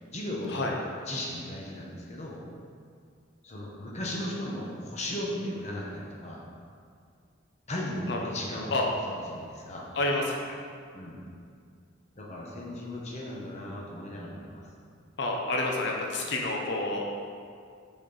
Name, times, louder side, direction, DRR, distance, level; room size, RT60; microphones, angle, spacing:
voice 1, 0.1-0.6 1.0-2.4 3.4-6.4 7.7-8.8 9.0-9.9 10.9-11.2 12.1-14.7, left 1 dB, 35° left, -3 dB, 1.0 m, -36 dB
voice 2, 10.0-10.6 15.2-17.0, left 2 dB, 60° left, -1 dB, 0.7 m, -29 dB
6.1 x 4.2 x 4.1 m, 2.3 s
head